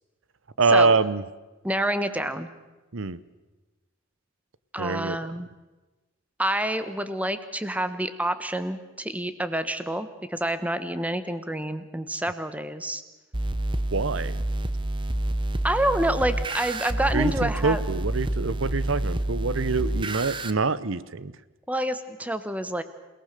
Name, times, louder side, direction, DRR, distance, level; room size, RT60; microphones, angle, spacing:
voice 1, 0.6-1.2 2.9-3.2 4.8-5.2 13.9-14.4 17.1-21.3, right 4 dB, 70° right, 17 dB, 0.8 m, -25 dB
voice 2, 1.6-2.5 4.7-5.5 6.4-13.0 15.6-17.8 21.7-22.8, right 1 dB, 5° right, 11 dB, 1.2 m, -28 dB
sound 1, 13.3-20.5, right 1 dB, 25° right, 0.9 m, -28 dB
28.0 x 18.5 x 6.7 m, 1.2 s
head